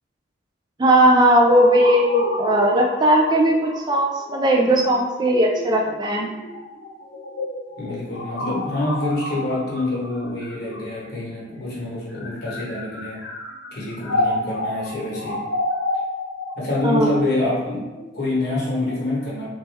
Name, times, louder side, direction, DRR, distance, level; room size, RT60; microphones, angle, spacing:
voice 1, 0.8-6.3 16.8-17.1, right 1 dB, 25° right, 0 dB, 0.3 m, -17 dB
sound 1, 1.4-11.2 12.0-18.9, left 1 dB, 90° left, 0.7 m, -30 dB
voice 2, 7.8-13.2 13.7-15.4 16.5-17.8 18.1-19.5, left 2 dB, 55° left, -5 dB, 1.2 m, -26 dB
3.2 x 2.7 x 3.3 m, 1.1 s
head